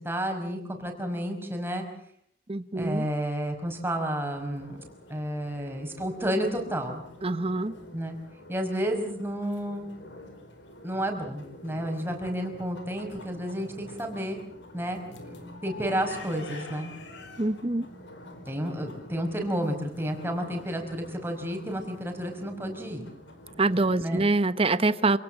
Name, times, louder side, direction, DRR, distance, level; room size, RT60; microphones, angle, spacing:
voice 1, 0.0-1.8 2.8-4.8 5.1-7.0 7.9-8.1 8.5-9.9 10.8-14.4 14.7-15.0 15.6-16.9 18.5-23.0 24.0-24.2, equal, 10° right, 3 dB, 5.1 m, -31 dB
voice 2, 2.5-3.1 7.2-7.7 17.4-17.9 23.6-25.2, right 2 dB, 30° right, 14 dB, 1.0 m, -25 dB
sound 1, 4.5-24.1, left 1 dB, 80° left, 4.8 m, -47 dB
27.5 x 18.5 x 7.4 m, 0.68 s
head